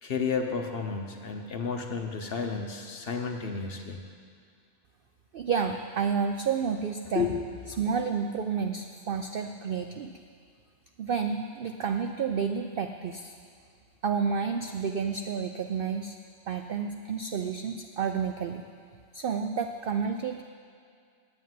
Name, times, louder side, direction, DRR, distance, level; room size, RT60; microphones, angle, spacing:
voice 1, 0.0-4.0 7.1-7.8, left 5 dB, 50° left, 4 dB, 1.0 m, -32 dB
voice 2, 5.3-7.3 7.8-10.1 11.0-13.3 14.0-16.2 16.5-18.6 19.1-20.4, right 6 dB, 65° right, 6 dB, 0.5 m, -30 dB
8.7 x 8.4 x 9.3 m, 2.2 s
omnidirectional pair, 1.4 m